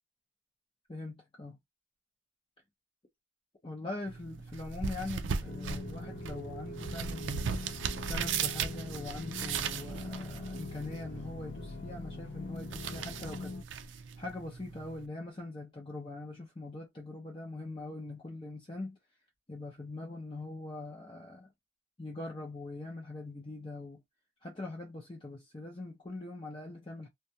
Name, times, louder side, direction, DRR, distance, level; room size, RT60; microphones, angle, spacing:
voice 1, 0.9-1.6 3.6-7.6 8.0-13.6 13.9-19.0 19.5-21.5 22.0-24.0 24.4-27.1, left 2 dB, 30° left, 0.6 m, -42 dB
sound 1, 4.1-15.1, right 6 dB, 90° right, 0.4 m, -38 dB
sound 2, 5.4-13.6, left 2 dB, 70° left, 0.4 m, -43 dB
2.4 x 2.2 x 2.7 m
head